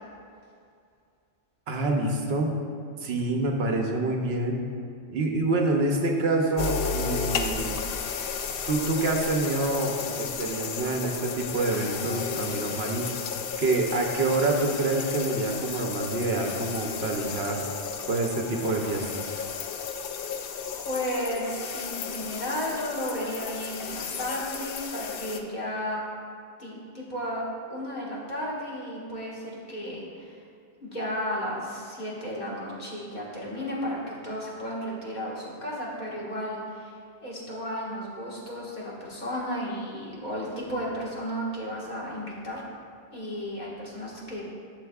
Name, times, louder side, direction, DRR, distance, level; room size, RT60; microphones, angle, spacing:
voice 1, 1.7-2.5 3.0-4.6 5.1-7.8 8.7-13.0 13.6-17.6 18.1-19.2, right 2 dB, 75° right, 2 dB, 1.0 m, -27 dB
sound 1, 6.6-25.4, left 6 dB, 65° left, 0.7 m, -33 dB
voice 2, 20.8-26.0 26.6-27.4 27.7-30.4 30.8-42.6 43.1-44.4, equal, 45° left, -6 dB, 1.7 m, -33 dB
11.5 x 6.7 x 2.4 m, 2.3 s
omnidirectional pair, 1.1 m